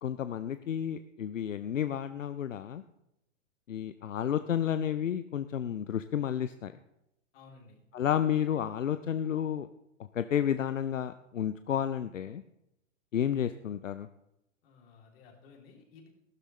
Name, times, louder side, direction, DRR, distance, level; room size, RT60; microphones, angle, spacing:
voice 1, 0.0-2.8 3.7-6.7 7.9-9.7 10.1-12.4 13.1-14.1, left 9 dB, 80° left, 12 dB, 0.6 m, -31 dB
voice 2, 7.3-7.8 14.6-16.1, left 4 dB, 50° left, 1 dB, 3.0 m, -55 dB
14.5 x 12.5 x 3.1 m, 0.86 s
figure-of-eight pair, 105°, 38 cm